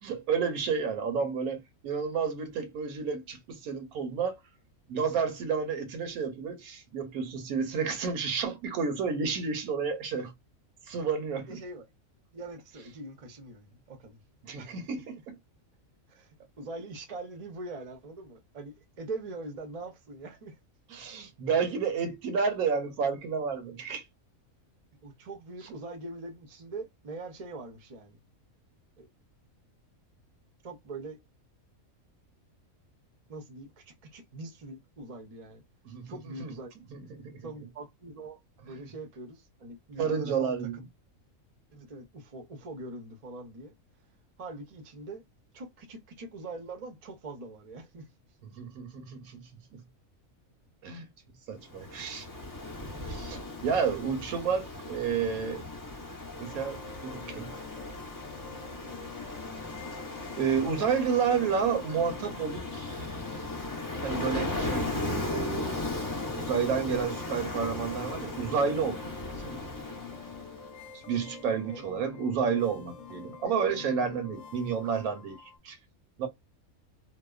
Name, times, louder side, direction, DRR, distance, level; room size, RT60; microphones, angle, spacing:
voice 1, 0.0-4.4 4.9-10.3 10.9-11.6 14.4-15.3 20.9-24.0 35.9-36.5 36.9-37.5 40.0-40.8 48.6-49.8 50.8-51.1 51.5-52.3 53.0-55.6 56.4-57.5 60.4-63.1 64.0-65.8 66.4-69.1 69.4-69.6 70.9-75.8 76.2-76.3, right 6 dB, 80° right, 1.2 m, -31 dB
voice 2, 11.4-11.9 12.3-14.2 14.6-15.0 16.1-20.6 25.0-28.2 29.0-29.1 30.6-31.2 33.3-35.6 36.1-36.7 37.4-40.8 41.7-43.7 44.4-45.2 45.5-48.1 71.6-71.8, right 2 dB, 40° right, 0.5 m, -43 dB
Ocean, 51.7-70.8, left 2 dB, 30° left, 0.3 m, -37 dB
sound 1, 56.4-75.6, left 5 dB, 65° left, 0.9 m, -47 dB
2.8 x 2.1 x 2.3 m
omnidirectional pair, 1.5 m